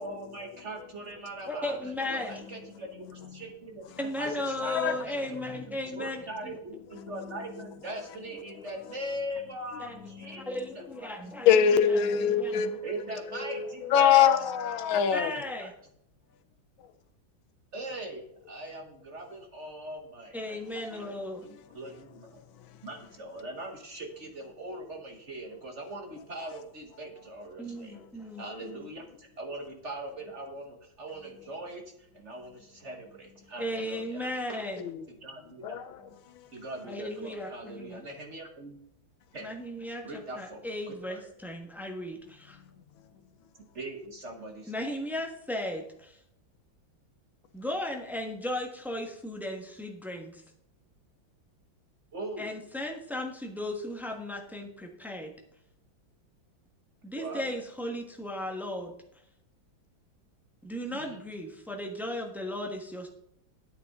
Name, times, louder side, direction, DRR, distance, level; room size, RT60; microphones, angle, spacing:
voice 1, 0.0-9.9 10.1-11.2 12.8-14.5 14.9-15.7 17.7-21.1 21.4-22.4 22.8-28.0 28.4-34.6 35.1-35.8 36.5-38.8 39.3-39.5 40.0-41.3 43.7-45.0 52.1-52.6 57.2-57.5 60.9-61.2, right 1 dB, 45° right, 1.1 m, -41 dB
voice 2, 1.5-2.3 4.0-6.5 9.8-9.9 10.5-11.6 12.4-12.6 15.1-15.7 20.3-21.5 27.6-28.9 33.6-34.8 36.9-38.0 39.4-42.6 44.7-46.2 47.5-50.4 52.4-55.3 57.0-59.0 60.6-63.1, left 1 dB, ahead, 1.0 m, -36 dB
voice 3, 4.6-5.0 5.5-5.6 7.0-7.4 8.6-8.7 10.1-10.5 11.5-15.3 22.6-22.7 34.8-35.1 35.6-36.5, left 8 dB, 85° left, 1.6 m, -25 dB
10.5 x 9.1 x 3.6 m
omnidirectional pair, 2.2 m